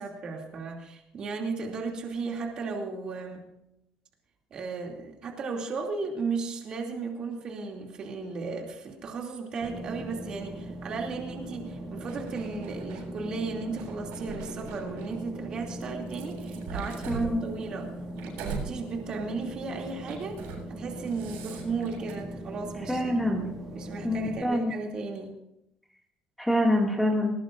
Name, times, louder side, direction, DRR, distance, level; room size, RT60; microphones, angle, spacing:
voice 1, 0.0-3.5 4.5-17.9 18.2-23.1 23.7-25.3, right 4 dB, 35° right, 1 dB, 2.7 m, -35 dB
sound 1, 9.6-24.4, right 1 dB, 15° right, 2.6 m, -40 dB
sound 2, 12.1-13.1 13.7-15.2 15.8-18.7 19.1-19.4 20.0-20.6 20.9-22.1, right 5 dB, 85° right, 7.6 m, -40 dB
voice 2, 17.1-17.5 22.9-23.5 24.0-24.7 26.4-27.3, left 1 dB, 5° left, -1 dB, 2.2 m, -25 dB
20.0 x 19.5 x 2.6 m, 0.83 s
cardioid pair, 160°, 3 cm